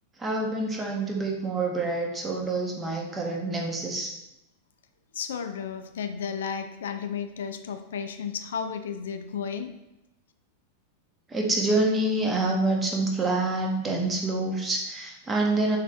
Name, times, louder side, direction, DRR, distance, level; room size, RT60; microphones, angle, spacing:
voice 1, 0.2-4.1 11.3-15.8, right 2 dB, 15° right, 0 dB, 0.8 m, -27 dB
voice 2, 5.1-9.7, left 7 dB, 60° left, 8 dB, 0.3 m, -33 dB
3.6 x 3.2 x 3.4 m, 0.90 s
figure-of-eight pair, 90°, 0 cm